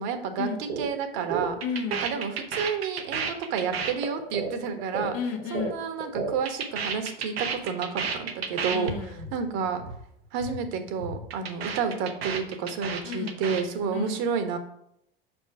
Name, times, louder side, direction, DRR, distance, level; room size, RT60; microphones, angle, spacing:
voice 1, 0.0-1.6 2.0-5.1 5.5-8.9 9.3-9.8 10.3-14.6, right 6 dB, 60° right, 8 dB, 1.2 m, -30 dB
sound 1, 0.7-0.9 1.1-5.7 6.0-8.9 9.2-9.4 9.6-10.0 10.2-10.6 10.9-13.6, right 5 dB, 90° right, 0.9 m, -32 dB
voice 2, 1.6-2.2 5.1-5.8 8.7-9.3 13.0-13.4 13.9-14.3, left 6 dB, 70° left, 5 dB, 1.2 m, -33 dB
5.4 x 5.4 x 4.7 m, 0.75 s
hypercardioid pair, 75°, 30 cm